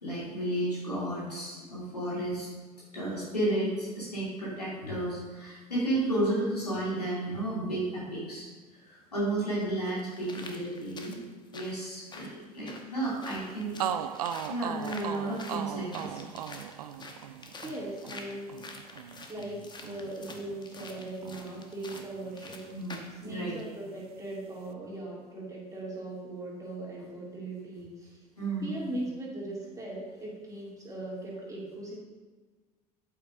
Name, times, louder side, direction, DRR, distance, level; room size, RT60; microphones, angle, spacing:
voice 1, 0.0-2.5 2.9-8.5 8.8-11.2 11.5-13.8 14.5-16.2 22.7-23.0 23.2-23.6 28.4-28.8, right 1 dB, 90° left, -7 dB, 2.6 m, -32 dB
sound 1, 8.8-8.9 9.6-23.2 23.6-23.7, left 3 dB, 20° left, 1.1 m, -47 dB
sound 2, 13.4-13.5 13.8-21.7 21.9-23.1, right 10 dB, 70° right, 0.4 m, -38 dB
voice 2, 17.6-18.5 19.3-22.7 23.2-28.2 28.6-32.0, right 1 dB, 15° right, -4 dB, 2.6 m, -39 dB
8.6 x 8.3 x 2.6 m, 1.4 s
figure-of-eight pair, 65°, 20 cm